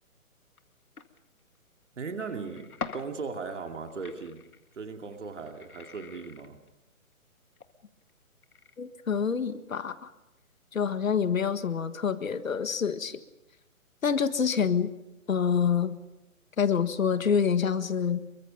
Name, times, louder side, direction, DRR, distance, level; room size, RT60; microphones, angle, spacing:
sound 1, 0.6-0.7 1.0-1.2 2.3-3.2 3.5-6.7 7.6-7.7 8.1-8.2 8.4-8.7, left 5 dB, 90° left, 2.0 m, -42 dB
voice 1, 2.0-2.7 2.9-4.4 4.8-6.6, right 4 dB, 55° right, 4 dB, 2.5 m, -37 dB
voice 2, 8.8-10.1 10.7-13.2 14.0-14.9 15.3-16.0 16.6-18.2, left 7 dB, 70° left, 11 dB, 1.8 m, -27 dB
27.5 x 23.5 x 5.3 m, 0.95 s
hypercardioid pair, 175°, 43 cm